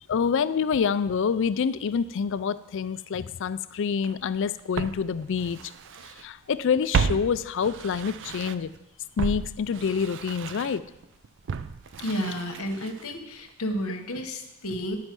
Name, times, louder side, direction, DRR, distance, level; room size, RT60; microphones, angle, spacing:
voice 1, 0.1-5.6 6.2-8.7 9.2-10.8, left 6 dB, 55° left, 15 dB, 0.4 m, -27 dB
Walk footsteps, 4.0-4.1 4.8-6.2 6.5-8.8 9.2-13.2 13.5-13.6, right 5 dB, 55° right, 0.4 m, -33 dB
voice 2, 12.0-15.0, equal, 70° left, 4 dB, 1.2 m, -31 dB
9.7 x 5.4 x 6.0 m, 0.91 s
head